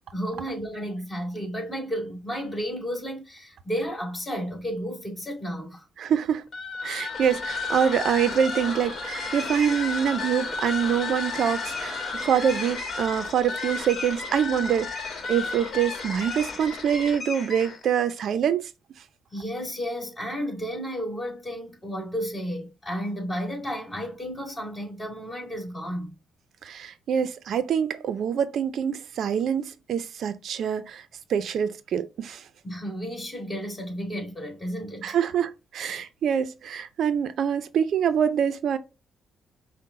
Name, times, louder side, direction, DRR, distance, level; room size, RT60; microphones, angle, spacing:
voice 1, 0.1-5.9 19.3-26.1 32.6-35.2, equal, 20° left, 2.3 m, -32 dB
voice 2, 6.0-6.4 6.8-18.7 26.6-31.0 31.3-32.4 35.0-38.8, right 8 dB, 65° right, 0.4 m, -25 dB
sound 1, 6.5-17.9, left 4 dB, 50° left, 1.2 m, -33 dB
5.4 x 2.1 x 3.7 m
cardioid pair, 90°, 0 cm